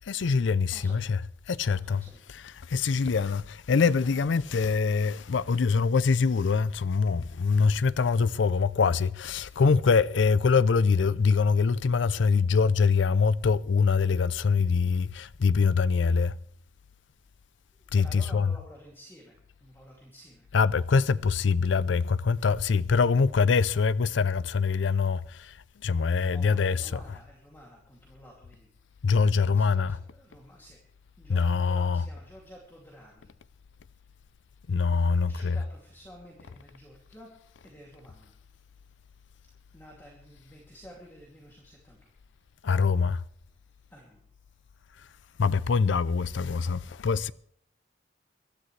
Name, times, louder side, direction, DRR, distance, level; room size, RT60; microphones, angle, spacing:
voice 1, 0.0-1.2 1.5-2.0 2.6-16.4 17.9-18.5 20.5-27.0 29.0-30.0 31.3-32.1 34.7-35.6 42.6-43.2 45.4-47.3, left 5 dB, 80° left, 0.5 m, -24 dB
voice 2, 0.7-1.1 1.7-2.2 3.9-4.7 17.7-20.5 26.3-28.7 29.5-30.8 31.2-33.3 35.1-37.3 37.6-38.3 39.7-42.0 43.9-44.2, equal, 10° left, 2.6 m, -51 dB
22.5 x 12.5 x 3.2 m
head